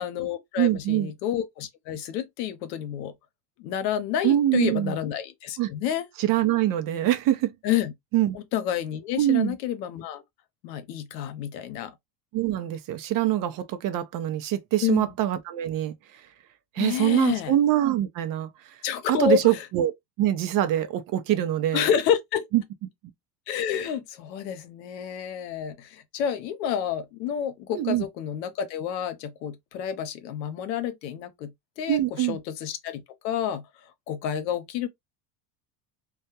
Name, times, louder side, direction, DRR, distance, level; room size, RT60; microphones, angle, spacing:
voice 1, 0.0-3.1 3.6-6.1 7.6-7.9 8.3-10.2 10.6-11.9 14.8-15.1 16.8-17.5 18.8-19.7 21.7-22.5 23.5-33.6 34.1-34.9, left 9 dB, 90° left, 0.7 m, -29 dB
voice 2, 0.6-1.1 4.2-5.0 5.6-5.7 6.2-7.5 8.1-8.4 9.2-9.6 12.3-15.9 16.8-18.5 19.1-19.9 20.2-21.9 22.5-22.6 27.7-28.1 31.9-32.4, right 13 dB, 45° right, 0.5 m, -24 dB
2.3 x 2.1 x 2.7 m
supercardioid pair, 105°, 49 cm